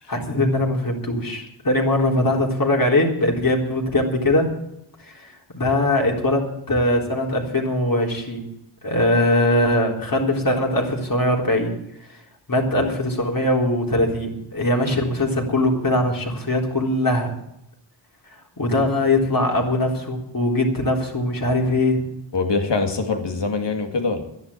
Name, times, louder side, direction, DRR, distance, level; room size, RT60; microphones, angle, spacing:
voice 1, 0.1-4.5 5.1-8.4 8.8-11.8 12.1-12.2 12.5-17.3 18.6-22.0, left 1 dB, 45° left, 0 dB, 3.8 m, -21 dB
voice 2, 22.3-24.3, left 4 dB, 65° left, 4 dB, 2.5 m, -23 dB
12.0 x 11.0 x 8.5 m, 0.80 s
wide cardioid pair, 75°, 46 cm